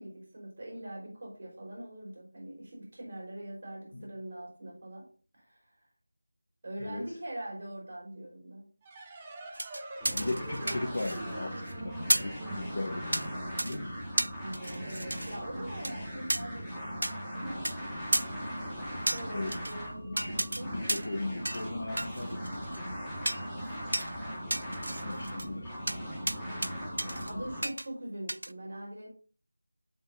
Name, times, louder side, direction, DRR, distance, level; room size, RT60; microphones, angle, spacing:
voice 1, 0.0-5.1 5.4-5.6 6.6-8.7 9.2-9.5 14.4-17.8 19.1-20.8 24.8-25.7 26.4-26.7 27.0-29.1, right 1 dB, 45° right, -1 dB, 4.6 m, -43 dB
sound 1, 8.8-14.1, right 2 dB, 15° right, 0.9 m, -45 dB
sound 2, 9.5-11.3 11.6-11.7 12.1-12.4 13.1-13.3 13.6-13.8 14.2-15.3 15.8-15.9 16.3-16.4 17.0-17.1 17.6-17.7 18.1-18.3 19.1-19.7 20.2-20.6 20.9-21.2 21.4-21.7 22.0-22.8 23.2-23.5 23.9-24.1 24.5-25.5 25.9-26.0 26.3-26.7 27.0-27.3 27.6-27.9 28.3-28.5, right 1 dB, 80° right, 0.4 m, -32 dB
sound 3, 10.0-27.6, equal, ahead, 3.4 m, -39 dB
voice 2, 10.1-13.3 13.6-13.9 19.3-19.5 20.0-20.3 20.6-22.7 23.3-23.4 25.0-25.8, left 2 dB, 50° left, 1 dB, 1.2 m, -37 dB
9.2 x 7.4 x 2.7 m, 0.39 s
figure-of-eight pair, 170°, 0 cm